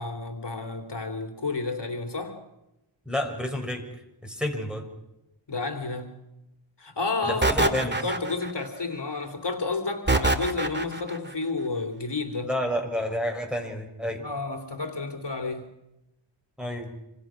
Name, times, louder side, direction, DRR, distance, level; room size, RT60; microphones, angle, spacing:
voice 1, 0.0-2.4 5.5-6.1 6.8-12.5 14.2-15.7, left 3 dB, 60° left, 5 dB, 2.9 m, -31 dB
voice 2, 3.1-3.8 4.2-4.9 7.2-7.9 12.4-14.2 16.6-17.0, equal, ahead, 3 dB, 6.1 m, -30 dB
sound 1, 7.4-8.7 10.1-11.2, right 2 dB, 25° right, 2.1 m, -24 dB
27.0 x 27.0 x 6.2 m, 0.90 s
wide cardioid pair, 90°, 46 cm